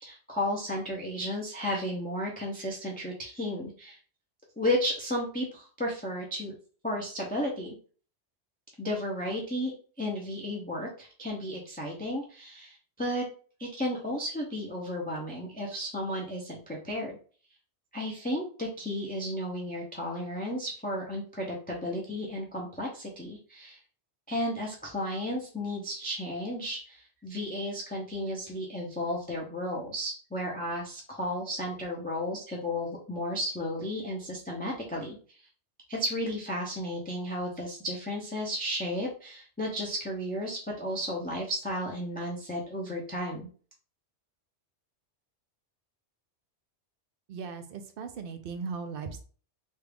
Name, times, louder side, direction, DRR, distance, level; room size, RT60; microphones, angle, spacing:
voice 1, 0.0-4.0 4.6-6.5 6.8-7.7 8.8-9.7 10.0-13.2 13.6-17.2 17.9-23.8 24.3-35.5 35.9-43.5, equal, 10° left, -3 dB, 0.5 m, -33 dB
voice 2, 47.3-49.2, right 5 dB, 60° right, 7 dB, 0.7 m, -38 dB
3.2 x 2.4 x 3.4 m, 0.41 s
omnidirectional pair, 1.2 m